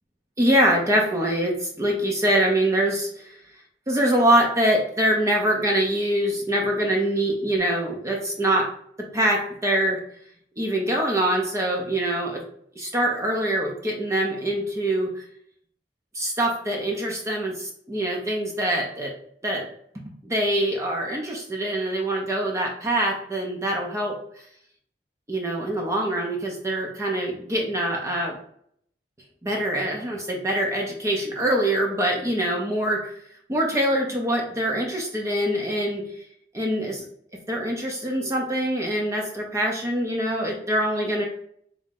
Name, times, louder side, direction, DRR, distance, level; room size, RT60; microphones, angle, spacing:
voice 1, 0.4-3.4 3.9-8.7 9.1-10.0 10.6-12.4 12.8-15.2 16.1-19.1 19.4-19.7 20.2-24.2 25.3-28.4 29.4-33.1 33.5-36.0 36.5-37.1 37.5-41.2, right 1 dB, 15° right, -1 dB, 0.6 m, -24 dB
3.6 x 2.6 x 3.7 m, 0.65 s
head